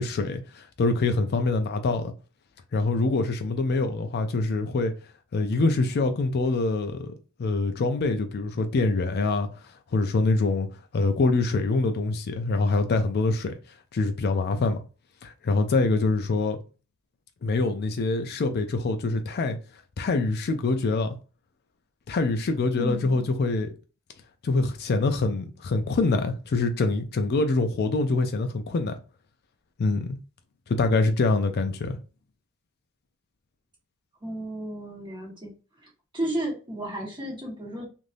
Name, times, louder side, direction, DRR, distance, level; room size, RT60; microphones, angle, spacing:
voice 1, 0.0-2.1 2.7-4.9 5.3-7.1 7.4-10.7 10.9-13.5 13.9-14.8 15.2-16.6 17.4-19.6 20.0-21.1 22.1-23.7 24.4-29.0 29.8-30.2 30.7-32.0, left 3 dB, 50° left, 0.4 m, -25 dB
voice 2, 22.8-23.2 34.2-35.5 35.8-37.9, right 1 dB, 20° right, 1.3 m, -33 dB
3.3 x 2.5 x 2.6 m
head